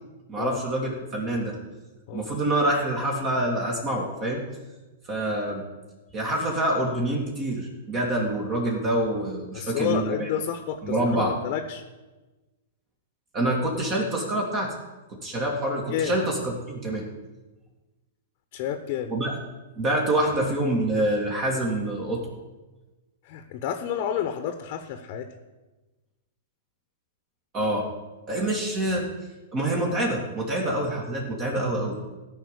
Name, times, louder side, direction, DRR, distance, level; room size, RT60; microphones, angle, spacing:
voice 1, 0.3-1.6 2.1-4.4 5.1-5.6 6.1-10.3 10.8-11.4 13.3-14.7 15.1-17.1 19.1-19.3 19.8-22.3 27.5-27.8 28.3-29.1 29.5-32.0, right 1 dB, 30° right, -1 dB, 2.4 m, -26 dB
voice 2, 9.5-11.8 15.9-16.2 18.5-19.1 23.3-25.3, left 9 dB, 45° left, 8 dB, 1.0 m, -30 dB
14.5 x 5.5 x 8.3 m, 1.2 s
hypercardioid pair, 110°, 0 cm